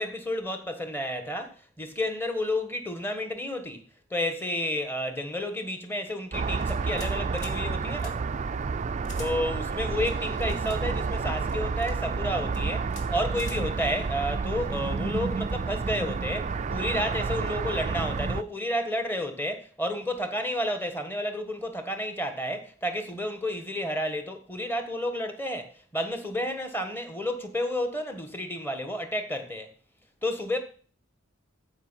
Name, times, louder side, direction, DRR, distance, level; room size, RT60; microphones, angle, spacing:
voice 1, 0.0-3.8 4.1-8.2 9.2-29.7 30.2-30.6, left 1 dB, 10° left, 1.4 m, -31 dB
sound 1, 6.3-18.4, right 4 dB, 35° right, 0.4 m, -30 dB
sound 2, 6.6-7.1 7.4-7.6 8.0-8.1 9.0-9.3 10.0-10.8 11.5-11.9 12.5-12.6 12.9-13.1 13.4-13.6, left 2 dB, 35° left, 2.5 m, -46 dB
13.5 x 5.3 x 5.7 m
head